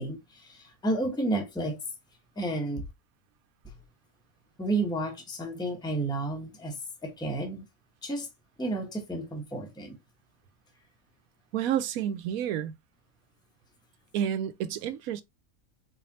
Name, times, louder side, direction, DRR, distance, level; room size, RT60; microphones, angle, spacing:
voice 1, 0.0-1.8 2.4-2.8 4.6-7.6 8.0-8.3 8.6-10.0, right 2 dB, 5° left, 0.9 m, -31 dB
voice 2, 11.5-12.7 14.1-15.2, right 10 dB, 85° right, 1.1 m, -30 dB
4.1 x 3.2 x 2.7 m
omnidirectional pair, 1.5 m